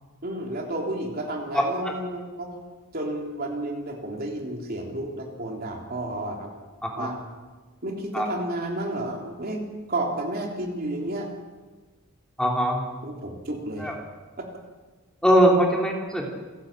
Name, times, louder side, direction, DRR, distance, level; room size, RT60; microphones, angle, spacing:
voice 1, 0.2-2.5 2.9-6.5 7.0-7.2 7.8-9.6 9.9-11.3 13.0-13.9 14.4-14.5, right 1 dB, 45° right, 1 dB, 3.3 m, -31 dB
voice 2, 1.5-1.9 6.8-7.1 8.1-8.3 12.4-12.8 13.8-13.9 15.2-16.3, equal, 5° left, 0 dB, 3.0 m, -21 dB
27.5 x 11.5 x 8.9 m, 1.3 s
head